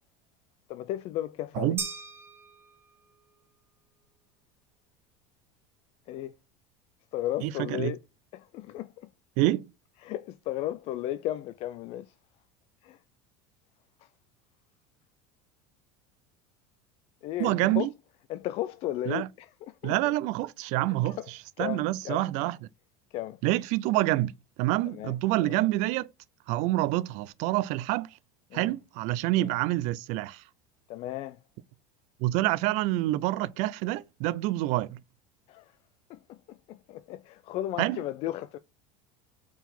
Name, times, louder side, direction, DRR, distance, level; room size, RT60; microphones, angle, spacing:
voice 1, 0.7-1.8 6.1-6.3 7.1-8.0 8.3-9.1 10.0-12.1 12.8-13.0 14.0-14.1 17.2-17.9 18.3-20.1 20.9-21.3 21.6-22.3 23.1-23.4 24.8-25.6 28.5-28.7 29.4-29.5 30.9-31.4 35.5-35.8 36.1-38.6, left 13 dB, 45° left, 0.4 m, -35 dB
sound 1, 1.8-3.2, right 5 dB, 15° right, 0.9 m, -39 dB
voice 2, 7.4-7.9 9.4-9.7 17.4-17.9 19.1-19.3 19.8-21.2 21.6-22.6 23.4-24.3 24.6-26.1 26.5-28.1 28.5-30.4 32.2-35.0 37.8-38.0, right 17 dB, 55° right, 0.4 m, -27 dB
4.6 x 3.9 x 5.3 m
supercardioid pair, 145°, 15 cm